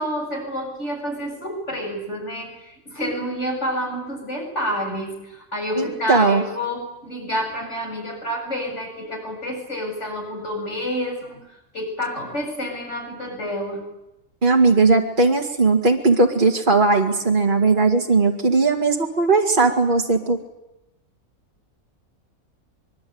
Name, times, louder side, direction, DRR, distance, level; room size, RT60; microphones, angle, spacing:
voice 1, 0.0-11.5 11.7-13.9, equal, 45° left, 1 dB, 8.3 m, -29 dB
voice 2, 5.8-6.4 14.4-20.4, right 3 dB, 30° right, 0 dB, 2.5 m, -18 dB
25.0 x 23.0 x 9.6 m, 0.90 s
omnidirectional pair, 1.6 m